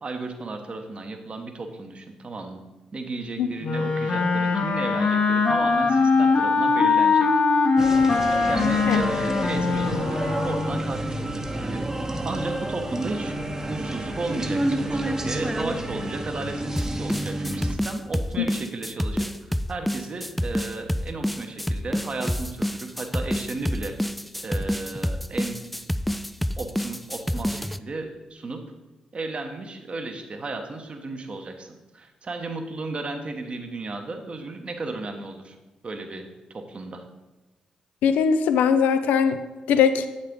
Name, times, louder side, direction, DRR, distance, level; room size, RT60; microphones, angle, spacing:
voice 1, 0.0-2.6 2.9-7.3 8.4-13.4 13.7-24.0 24.4-25.6 26.6-28.6 29.1-35.6 35.8-37.0, right 3 dB, 45° right, 5 dB, 1.1 m, -34 dB
Wind instrument woodwind instrument, 3.6-11.0, left 4 dB, 55° left, 0.9 m, -21 dB
sound 1, 7.8-17.8, right 1 dB, 20° right, 0.9 m, -29 dB
sound 2, 16.8-27.8, equal, ahead, 0.3 m, -28 dB
voice 2, 38.0-39.4 39.7-40.1, left 7 dB, 80° left, 10 dB, 0.4 m, -20 dB
7.6 x 6.4 x 3.7 m, 1.1 s
supercardioid pair, 50°, 3 cm